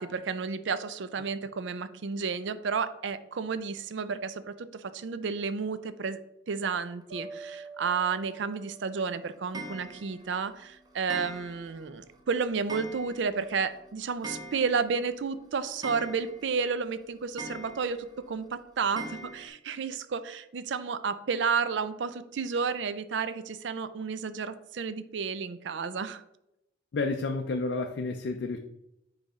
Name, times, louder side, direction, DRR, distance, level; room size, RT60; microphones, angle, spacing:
voice 1, 0.0-6.2 6.5-26.2, right 5 dB, 75° right, 13 dB, 0.4 m, -32 dB
sound 1, 7.1-10.2, right 3 dB, 55° right, 2.1 m, -47 dB
Clock, 9.5-10.3 11.1-11.8 12.1-12.2 12.7-13.5 13.7-13.8 14.0-15.0 15.3-15.4 15.8-16.6 17.4-18.1 19.0-19.5, right 2 dB, 20° right, 0.6 m, -41 dB
voice 2, 26.9-28.6, left 3 dB, 70° left, 5 dB, 0.4 m, -30 dB
9.2 x 3.3 x 3.6 m, 0.85 s
head